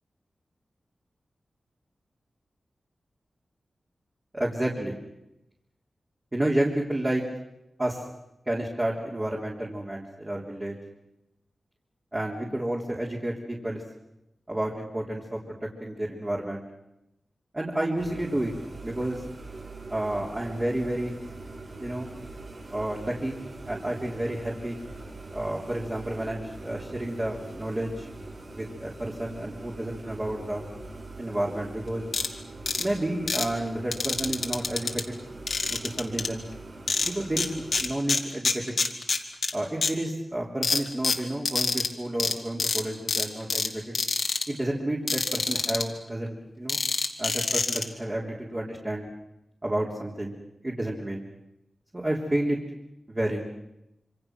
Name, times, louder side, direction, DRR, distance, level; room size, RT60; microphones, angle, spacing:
voice 1, 4.3-5.0 6.3-7.2 7.8-8.0 8.5-10.8 12.1-13.8 14.5-15.6 15.8-16.6 17.5-18.5 18.8-19.2 19.9-21.2 21.8-22.1 22.7-24.8 25.3-28.1 28.5-30.6 31.2-32.3 32.8-35.2 35.7-36.5 37.0-37.5 37.8-38.7 39.5-43.9 44.5-46.8 47.2-49.1 49.6-50.4 50.6-51.3 51.9-52.6 53.1-53.4, right 1 dB, 25° right, -3 dB, 3.5 m, -30 dB
sound 1, 18.0-37.8, right 2 dB, 55° right, 6.1 m, -43 dB
sound 2, 32.1-32.3 32.7-32.8 33.3-33.5 33.9-35.0 35.5-36.3 36.9-37.5 37.7-39.5 39.8-39.9 40.6-41.9 42.2-42.3 42.6-42.8 43.1-43.7 43.9-44.4 45.1-45.8 46.7-47.8, left 4 dB, 65° left, 2.3 m, -26 dB
26.5 x 25.5 x 6.2 m, 0.88 s
wide cardioid pair, 110°, 0 cm